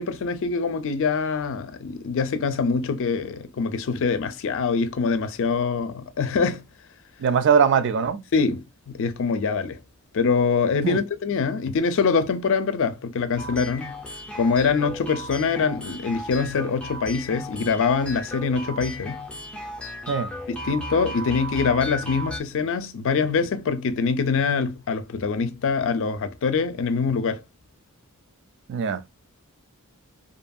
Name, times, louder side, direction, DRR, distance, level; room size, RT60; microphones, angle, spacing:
voice 1, 0.0-6.6 8.3-9.8 10.1-13.9 14.3-19.2 20.5-27.4, left 5 dB, 65° left, 0.4 m, -24 dB
voice 2, 7.2-8.2 10.8-11.0 20.1-20.3 28.7-29.0, right 6 dB, 55° right, 0.3 m, -21 dB
sound 1, 13.4-22.4, equal, 5° left, 0.5 m, -35 dB
2.6 x 2.6 x 2.2 m
head